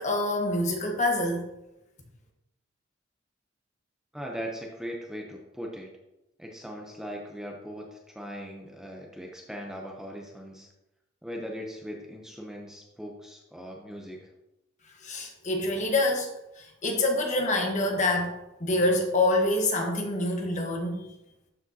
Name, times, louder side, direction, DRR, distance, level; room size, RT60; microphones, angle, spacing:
voice 1, 0.0-1.4 15.0-16.3 16.6-21.1, left 2 dB, 40° left, 2 dB, 1.2 m, -26 dB
voice 2, 4.1-5.9 6.4-10.7 11.2-14.3, equal, 5° right, 0 dB, 0.7 m, -39 dB
12.0 x 4.9 x 2.8 m, 0.91 s
head